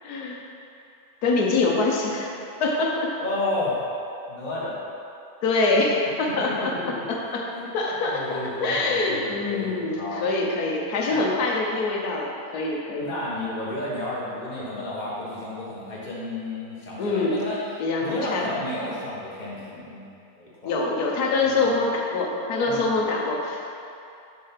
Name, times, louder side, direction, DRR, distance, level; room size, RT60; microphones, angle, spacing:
voice 1, 0.0-0.4 1.2-2.3 2.6-3.1 5.4-6.7 7.1-7.4 7.7-13.1 17.0-17.4 17.8-18.5 20.6-23.6, left 3 dB, 90° left, -2 dB, 1.4 m, -24 dB
voice 2, 3.2-3.8 4.3-4.8 7.5-10.2 11.1-11.3 13.0-17.6 18.0-20.1 20.4-20.8 21.4-21.7 22.6-22.9, left 2 dB, 30° left, -6 dB, 1.4 m, -32 dB
6.4 x 4.5 x 5.8 m, 2.6 s
omnidirectional pair, 1.6 m